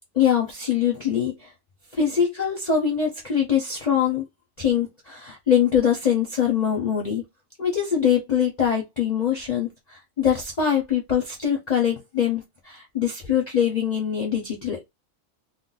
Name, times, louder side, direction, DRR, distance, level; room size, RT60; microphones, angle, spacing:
voice 1, 0.1-1.5 1.9-4.3 4.6-7.2 7.6-14.8, left 8 dB, 45° left, 0.6 m, -23 dB
2.5 x 2.0 x 3.8 m
omnidirectional pair, 1.4 m